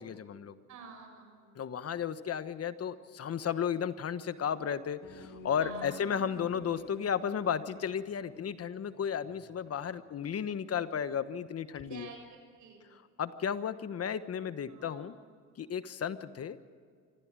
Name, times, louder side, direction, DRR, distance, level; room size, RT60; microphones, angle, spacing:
voice 1, 0.0-0.6 1.5-12.1 12.9-15.1 15.6-16.6, left 8 dB, 50° left, 12 dB, 1.2 m, -34 dB
voice 2, 0.7-1.5 5.6-6.4 11.7-12.2 12.6-12.9 14.7-15.1, right 5 dB, 80° right, 4 dB, 6.6 m, -49 dB
sound 1, 5.0-9.9, left 5 dB, 80° left, 2.7 m, -51 dB
25.0 x 15.0 x 7.5 m, 2.1 s
cardioid pair, 90°, 30 cm